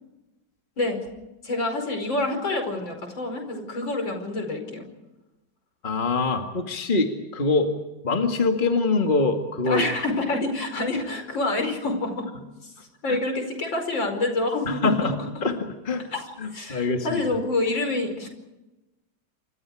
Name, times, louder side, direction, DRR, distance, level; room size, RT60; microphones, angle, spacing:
voice 1, 1.4-4.8 9.7-12.3 12.6-12.7 13.0-15.1 16.1-16.2 16.5-18.3, left 2 dB, 75° left, 5 dB, 5.8 m, -27 dB
voice 2, 5.8-7.7 8.0-9.8 13.1-13.2 14.7-15.6 15.8-16.1 16.4-17.2, left 3 dB, 25° left, 4 dB, 2.2 m, -24 dB
28.5 x 26.5 x 4.9 m, 1.0 s
omnidirectional pair, 2.1 m